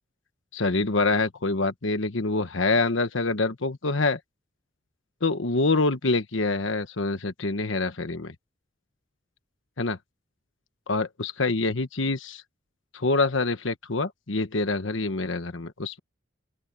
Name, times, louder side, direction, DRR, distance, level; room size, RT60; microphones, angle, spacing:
voice 1, 0.5-4.2 5.2-8.3 9.8-10.0 10.9-12.4 12.9-16.0, left 3 dB, 75° left, 1.2 m, -26 dB
open air
head